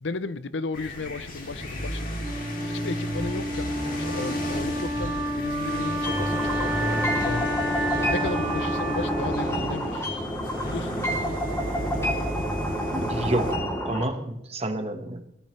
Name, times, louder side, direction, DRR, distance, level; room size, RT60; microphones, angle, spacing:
voice 1, 0.0-2.2 2.6-7.5 8.0-10.0 10.6-11.1, left 3 dB, 75° left, 0.7 m, -35 dB
sound 1, 0.7-13.5, equal, 50° left, 3.1 m, -34 dB
Wind instrument woodwind instrument, 2.2-10.2, equal, 15° right, 5.4 m, -30 dB
sound 2, 6.0-14.0, equal, 15° left, 3.3 m, -29 dB
voice 2, 12.9-15.2, right 1 dB, 35° right, 1.5 m, -29 dB
23.0 x 16.0 x 3.3 m
head